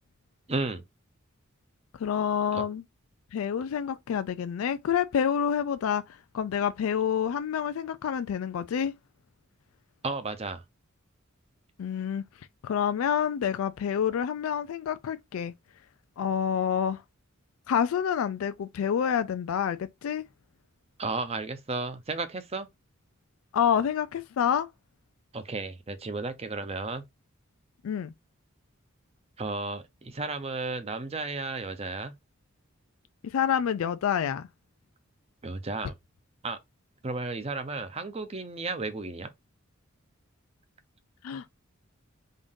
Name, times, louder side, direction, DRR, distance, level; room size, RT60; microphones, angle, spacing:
voice 1, 0.5-0.8 2.5-2.6 10.0-10.6 21.0-22.7 25.3-27.0 29.4-32.1 35.4-35.9 36.4-36.6 37.0-39.3, right 3 dB, 30° right, 0.6 m, -33 dB
voice 2, 2.0-2.8 3.3-6.0 6.3-8.9 11.8-12.2 12.6-15.5 16.2-17.0 17.7-20.2 23.5-24.7 27.8-28.1 33.2-34.5 41.2-41.4, left 8 dB, 75° left, 0.3 m, -28 dB
3.7 x 2.6 x 3.6 m
head